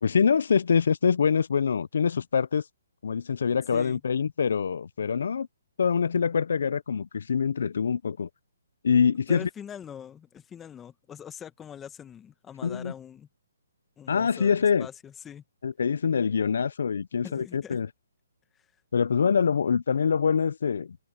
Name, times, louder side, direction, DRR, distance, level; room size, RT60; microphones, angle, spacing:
voice 1, 0.0-2.6 3.0-5.5 5.8-8.3 8.8-9.5 12.6-12.9 14.1-14.9 15.6-17.9 18.9-21.0, left 6 dB, 70° left, 0.5 m, -25 dB
voice 2, 9.3-13.3 14.0-15.4 17.2-17.8, left 8 dB, 15° left, 1.7 m, -43 dB
hypercardioid pair, 145°, 0 cm